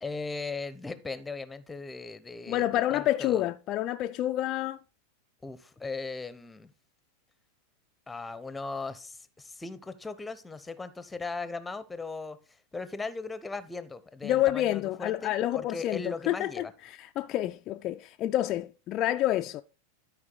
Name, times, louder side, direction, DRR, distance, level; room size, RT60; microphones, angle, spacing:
voice 1, 0.0-3.4 5.4-6.7 8.1-12.4 12.7-16.7, left 3 dB, 10° left, 0.7 m, -38 dB
voice 2, 2.5-4.8 14.2-19.6, left 13 dB, 35° left, 0.3 m, -28 dB
12.5 x 4.7 x 3.9 m
figure-of-eight pair, 90°, 0 cm